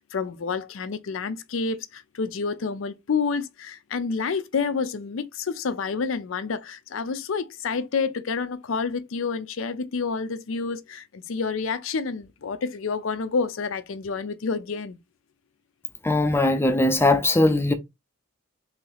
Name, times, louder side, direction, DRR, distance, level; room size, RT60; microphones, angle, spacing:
voice 1, 0.1-15.0, left 5 dB, 70° left, 0.5 m, -29 dB
voice 2, 16.0-17.7, left 2 dB, 10° left, 0.5 m, -20 dB
3.3 x 2.9 x 3.9 m
head